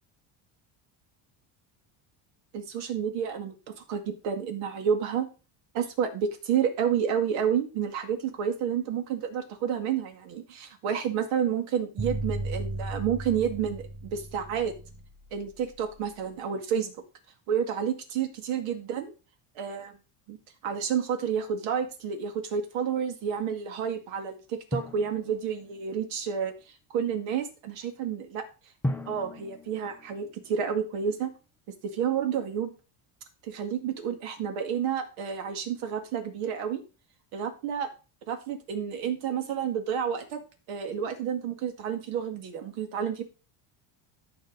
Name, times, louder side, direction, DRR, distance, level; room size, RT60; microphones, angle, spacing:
voice 1, 2.5-3.5 3.9-5.3 5.7-14.7 15.3-16.9 17.5-19.1 19.6-19.9 20.3-20.4 20.6-26.5 26.9-28.4 29.1-31.3 31.8-32.7 33.4-36.8 37.3-37.9 38.3-40.4 40.7-43.2, right 8 dB, 75° right, 6 dB, 2.1 m, -30 dB
sound 1, 12.0-16.1, right 2 dB, 20° right, 3.0 m, -35 dB
Drum, 24.7-26.2 28.8-31.0, left 1 dB, 5° left, 0.5 m, -37 dB
13.0 x 5.4 x 4.0 m, 0.33 s
cardioid pair, 140°, 46 cm